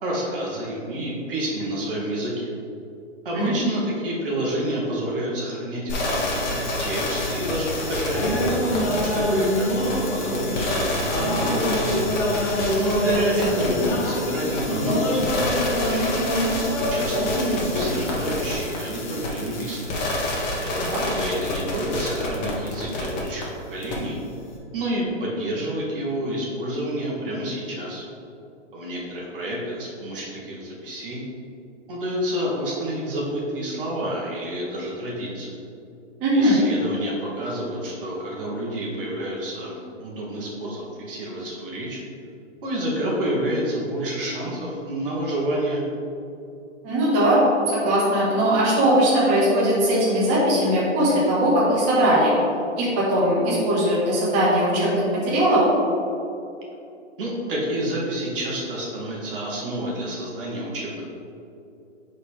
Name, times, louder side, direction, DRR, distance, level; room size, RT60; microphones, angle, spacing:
voice 1, 0.0-2.5 3.2-8.5 9.0-12.0 12.8-16.1 16.8-19.8 20.6-24.2 24.7-28.0 28.7-31.2 31.9-35.5 36.3-42.0 42.6-45.8 57.2-61.0, right 1 dB, 45° right, -4 dB, 1.6 m, -29 dB
sound 1, 5.9-23.4 23.8-23.9, left 1 dB, 35° left, 1.4 m, -28 dB
sound 2, 8.1-18.6, equal, 15° left, 0.5 m, -25 dB
voice 2, 36.2-36.6 46.8-47.4 47.7-52.3 52.8-55.6, right 1 dB, 20° right, -8 dB, 1.4 m, -20 dB
9.5 x 4.1 x 3.5 m, 2.7 s
hypercardioid pair, 155°, 37 cm